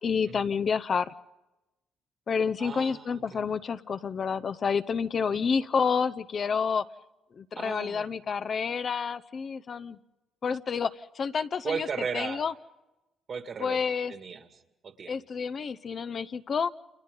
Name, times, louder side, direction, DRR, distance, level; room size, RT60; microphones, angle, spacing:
voice 1, 0.0-1.1 2.3-6.8 7.4-10.0 10.4-11.9 12.1-12.5 13.6-14.1 15.1-16.7, left 6 dB, 50° left, 13 dB, 0.7 m, -29 dB
voice 2, 2.6-3.5 5.3-5.4 7.6-8.1 11.6-12.4 13.3-13.8 14.1-15.2, right 6 dB, 50° right, 7 dB, 2.1 m, -36 dB
29.5 x 28.0 x 3.9 m, 0.99 s
cardioid pair, 90°, 0 cm